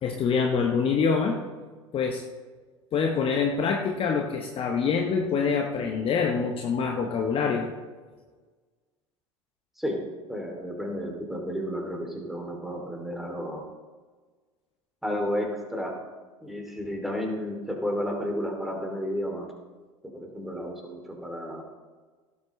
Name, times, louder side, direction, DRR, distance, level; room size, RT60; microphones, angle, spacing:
voice 1, 0.0-1.4 1.9-2.2 2.9-7.7, left 5 dB, 35° left, 2 dB, 1.1 m, -25 dB
voice 2, 10.3-13.6 15.0-16.0 16.4-19.5 20.0-21.6, equal, ahead, 1 dB, 2.8 m, -32 dB
17.0 x 8.4 x 3.3 m, 1.4 s
figure-of-eight pair, 70°, 16 cm